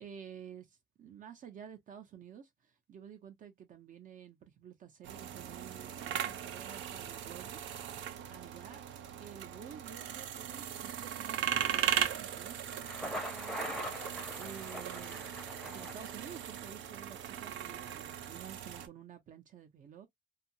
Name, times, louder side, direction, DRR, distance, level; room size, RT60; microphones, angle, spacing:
voice 1, 0.0-7.6 8.3-8.8 9.2-14.0 14.3-15.4 15.7-20.1, right 8 dB, 45° right, 0.5 m, -51 dB
sound 1, 5.0-18.9, right 10 dB, 90° right, 0.6 m, -38 dB
Thunder, 12.7-16.7, equal, ahead, 0.6 m, -42 dB
2.6 x 2.3 x 2.7 m
cardioid pair, 180°, 19 cm